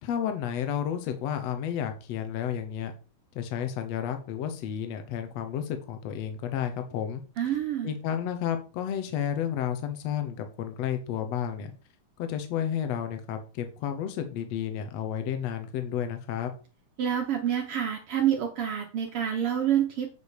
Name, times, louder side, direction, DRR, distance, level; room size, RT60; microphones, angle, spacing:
voice 1, 0.0-2.9 3.3-7.2 7.8-11.7 12.2-16.5, left 9 dB, 65° left, 7 dB, 1.7 m, -31 dB
voice 2, 7.4-7.9 17.0-20.1, right 9 dB, 75° right, 3 dB, 1.3 m, -27 dB
8.5 x 5.4 x 6.6 m, 0.35 s
omnidirectional pair, 4.2 m